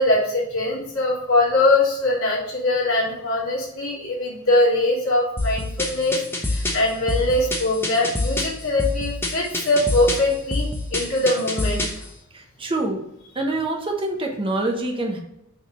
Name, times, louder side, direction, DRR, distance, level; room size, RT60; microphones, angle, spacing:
voice 1, 0.0-11.8, left 2 dB, 65° left, -6 dB, 2.9 m, -22 dB
sound 1, 5.4-12.1, left 2 dB, 10° left, 1.0 m, -26 dB
voice 2, 12.3-13.0 13.3-15.2, right 2 dB, 25° right, 1 dB, 1.2 m, -25 dB
6.8 x 3.7 x 6.1 m, 0.81 s
head